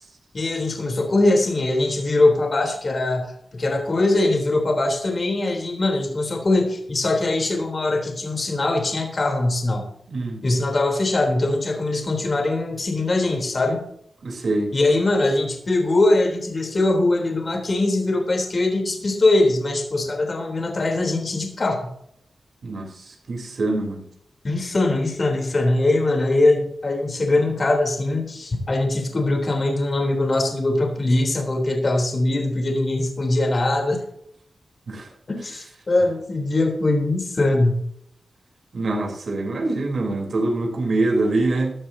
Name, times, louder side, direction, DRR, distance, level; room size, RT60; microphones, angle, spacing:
voice 1, 0.3-9.8 10.4-13.9 14.7-21.9 24.4-34.0 35.3-37.8, left 2 dB, 40° left, 1 dB, 3.5 m, -21 dB
voice 2, 10.1-10.4 14.2-14.7 22.6-24.0 34.9-35.1 38.7-41.7, right 2 dB, 60° right, 1 dB, 3.7 m, -24 dB
15.5 x 13.0 x 2.8 m, 0.71 s
wide cardioid pair, 125°, 0 cm